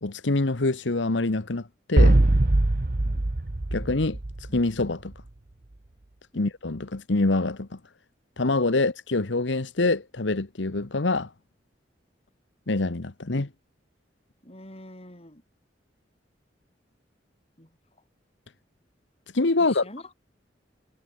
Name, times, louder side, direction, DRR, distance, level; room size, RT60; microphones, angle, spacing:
voice 1, 0.0-2.2 3.7-4.2 4.5-5.1 6.4-7.7 8.4-11.3 12.7-13.5 19.3-19.8, left 2 dB, 85° left, 1.2 m, -25 dB
sound 1, 2.0-4.8, right 2 dB, 50° right, 1.0 m, -21 dB
voice 2, 14.4-15.4 17.6-17.8 19.6-20.1, left 1 dB, 35° left, 6.7 m, -46 dB
head